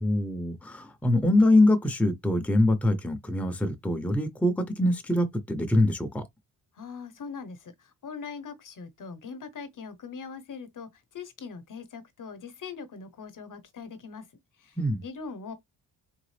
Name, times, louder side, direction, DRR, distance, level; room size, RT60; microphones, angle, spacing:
voice 1, 0.0-6.2 14.8-15.0, left 1 dB, 5° left, 0.7 m, -24 dB
voice 2, 6.8-14.2 14.6-14.8 15.0-15.5, left 5 dB, 50° left, 1.0 m, -41 dB
3.9 x 3.6 x 3.3 m
wide cardioid pair, 125°, 40 cm